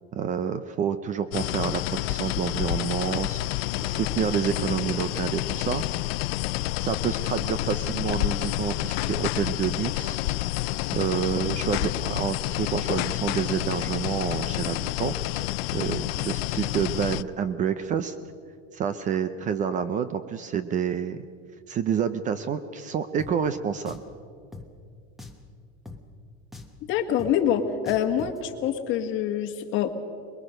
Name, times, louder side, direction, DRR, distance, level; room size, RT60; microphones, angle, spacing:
voice 1, 0.1-1.8 2.1-6.2 6.8-10.2 10.9-18.2 18.7-21.2 21.7-24.0, right 7 dB, 25° right, 12 dB, 0.6 m, -28 dB
sound 1, 1.3-17.2, left 18 dB, 75° left, 0.5 m, -29 dB
Drum, 23.2-23.3 23.9-24.1 24.5-24.7 25.2-25.5 25.9-26.0 26.5-26.8 27.2-27.3 27.9-28.4, left 3 dB, ahead, 1.2 m, -42 dB
voice 2, 26.9-30.0, left 9 dB, 40° left, 6 dB, 1.8 m, -25 dB
23.0 x 21.5 x 6.5 m, 2.3 s
supercardioid pair, 160°, 30 cm